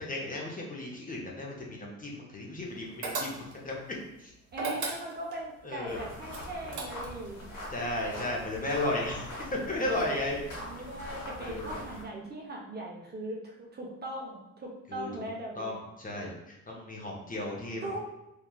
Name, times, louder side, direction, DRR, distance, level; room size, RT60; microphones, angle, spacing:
voice 1, 0.0-3.8 4.2-4.3 5.6-6.0 7.7-9.3 9.7-10.4 11.5-11.7 14.9-15.2 15.6-17.8, left 1 dB, 25° left, -2 dB, 0.7 m, -34 dB
sound 1, 3.0-3.7 4.5-5.4 6.3-7.3, right 3 dB, 70° right, 0.8 m, -35 dB
voice 2, 4.5-7.4 9.8-10.0 10.6-15.8 17.8-18.0, right 1 dB, 30° right, -2 dB, 0.6 m, -40 dB
sound 2, 5.9-12.0, left 1 dB, 70° left, 1.3 m, -43 dB
3.1 x 2.3 x 2.2 m, 0.88 s
cardioid pair, 85°, 31 cm